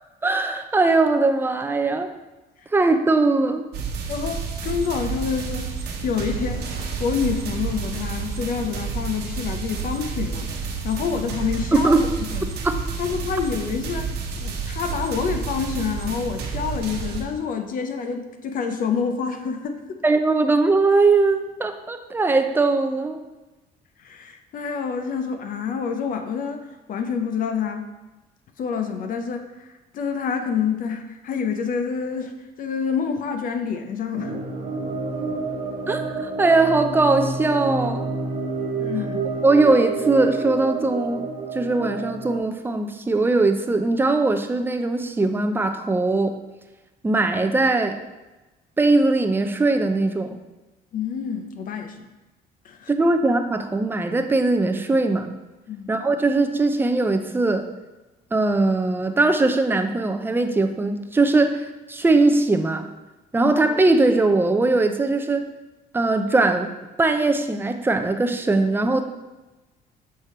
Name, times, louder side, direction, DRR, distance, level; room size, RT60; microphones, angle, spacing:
voice 1, 0.2-2.1 2.7-3.6 11.7-12.0 12.6-12.7 20.0-23.2 35.9-38.1 39.4-41.3 41.5-46.4 47.0-48.0 48.8-50.4 52.9-55.3 55.9-57.7 58.3-62.9 63.3-65.5 65.9-66.7 67.0-69.0, right 3 dB, 10° right, 6 dB, 0.5 m, -20 dB
sound 1, 3.7-17.2, right 5 dB, 75° right, 1.0 m, -30 dB
voice 2, 4.1-6.7 7.0-12.5 13.0-20.0 24.0-27.9 28.6-34.3 38.8-39.4 50.9-52.1 52.6-52.9 55.7-55.9 63.4-63.5, left 6 dB, 55° left, 6 dB, 0.6 m, -28 dB
sound 2, 34.1-42.4, right 4 dB, 50° right, 1.5 m, -28 dB
6.5 x 3.4 x 4.3 m, 1.1 s
cardioid pair, 110°, 17 cm